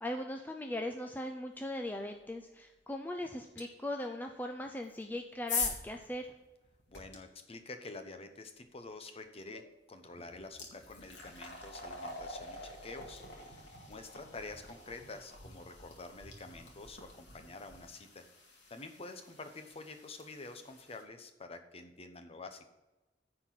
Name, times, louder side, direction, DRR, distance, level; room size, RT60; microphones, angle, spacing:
voice 1, 0.0-6.3, left 1 dB, 10° left, 4 dB, 0.5 m, -39 dB
sound 1, 3.6-3.7 4.7-7.2 9.5-9.6 10.0-21.0, left 4 dB, 75° left, 2.1 m, -44 dB
voice 2, 6.9-9.6 9.9-13.2 13.5-13.6 13.9-18.3 18.7-22.6, left 3 dB, 35° left, 7 dB, 1.0 m, -48 dB
10.0 x 4.5 x 7.5 m, 1.1 s
head